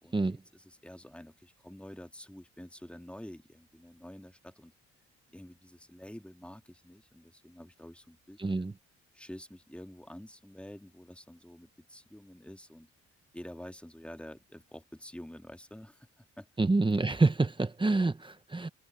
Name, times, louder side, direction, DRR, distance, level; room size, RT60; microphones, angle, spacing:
voice 1, 0.0-4.7 5.3-8.7 9.1-12.9 13.3-16.5, left 1 dB, 5° left, 2.1 m, -48 dB
voice 2, 8.4-8.7 16.6-18.7, right 3 dB, 15° right, 1.2 m, -27 dB
cardioid pair, 90°, 30 cm